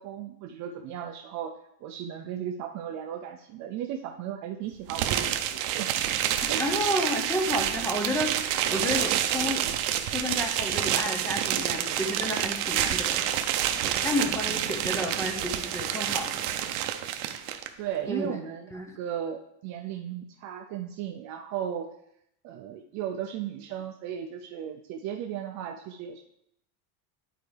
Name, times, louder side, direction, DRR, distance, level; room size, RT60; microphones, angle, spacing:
voice 1, 0.0-6.0 6.5-6.7 14.5-14.9 17.8-21.9 22.4-26.2, right 9 dB, 40° right, 4 dB, 0.4 m, -36 dB
sound 1, 4.9-17.7, right 11 dB, 65° right, 0.8 m, -28 dB
voice 2, 6.6-9.6 10.1-13.3 13.8-16.4 18.1-18.4 18.7-19.0, left 1 dB, 5° left, 2 dB, 0.7 m, -31 dB
11.0 x 4.6 x 3.3 m, 0.75 s
cardioid pair, 155°, 45 cm